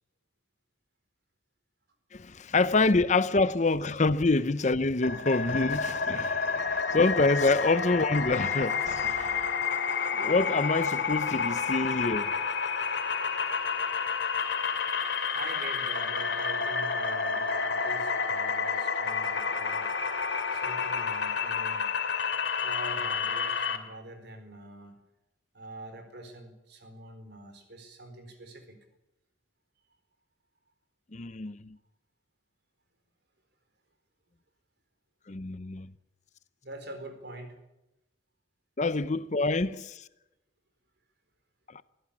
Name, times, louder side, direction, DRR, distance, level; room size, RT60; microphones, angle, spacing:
voice 1, 2.1-9.4 10.2-12.4 31.1-31.8 35.3-35.9 38.8-40.1 41.7-41.8, left 3 dB, 40° left, 0.7 m, -26 dB
sound 1, 5.0-23.8, left 5 dB, 65° left, 2.8 m, -30 dB
voice 2, 15.3-19.9 20.5-21.9 22.6-25.0 25.5-28.8 36.6-37.6, right 1 dB, 60° right, 4.4 m, -44 dB
23.5 x 16.0 x 8.6 m
head